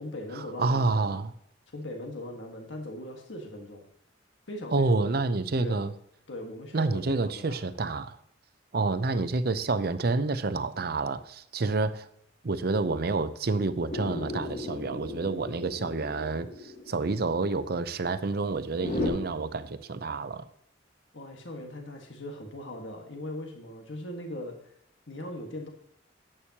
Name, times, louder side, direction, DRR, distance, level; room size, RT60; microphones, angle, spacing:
voice 1, 0.0-1.1 1.7-3.9 4.5-5.1 5.5-5.9 6.3-7.7 21.1-24.7 25.1-25.7, left 1 dB, 80° left, 1.6 m, -39 dB
voice 2, 0.6-1.3 4.7-5.9 6.7-8.2 8.7-12.1 12.4-20.4, right 3 dB, 55° right, 0.6 m, -28 dB
sound 1, 13.9-19.1, left 1 dB, 45° left, 1.6 m, -36 dB
11.0 x 8.8 x 2.9 m
head